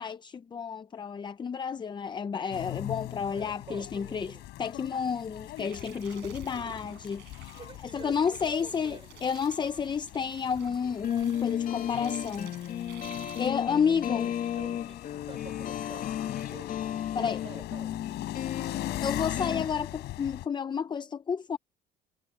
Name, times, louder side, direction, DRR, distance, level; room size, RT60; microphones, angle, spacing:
voice 1, 0.0-7.6 7.9-12.5 13.4-14.3 17.1-17.4 19.0-21.6, left 6 dB, 25° left, 0.6 m, -31 dB
sound 1, 2.5-20.5, left 17 dB, 85° left, 5.1 m, -41 dB
voice 2, 3.3-4.5 6.2-6.8 7.5-9.2 13.8-16.8 17.1-17.9 18.7-19.6, right 5 dB, 30° right, 4.7 m, -49 dB
sound 2, 5.6-13.5, right 19 dB, 90° right, 7.9 m, -52 dB
sound 3, 10.8-19.7, left 10 dB, 55° left, 2.1 m, -33 dB
cardioid pair, 110°, 17 cm